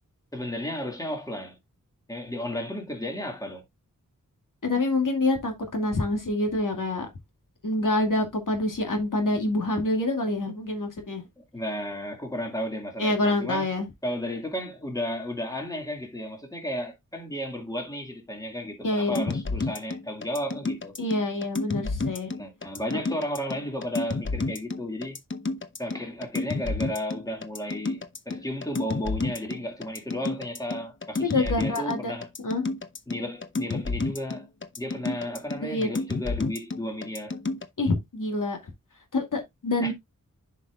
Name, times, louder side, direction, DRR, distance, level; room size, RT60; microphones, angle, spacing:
voice 1, 0.3-1.6 2.1-3.6 11.4-13.7 14.0-21.0 22.4-25.2 25.8-32.3 33.1-34.5 34.8-37.4 39.8-39.9, equal, 10° left, 2.3 m, -33 dB
voice 2, 4.6-7.1 7.6-11.2 13.0-13.9 18.8-19.3 21.0-22.3 22.9-23.0 31.2-32.1 32.4-32.7 35.6-35.9 37.8-38.6 39.1-39.9, left 2 dB, 75° left, 2.3 m, -26 dB
sound 1, 19.1-37.6, left 3 dB, 35° left, 1.0 m, -30 dB
10.5 x 5.5 x 2.4 m
wide cardioid pair, 70°, 32 cm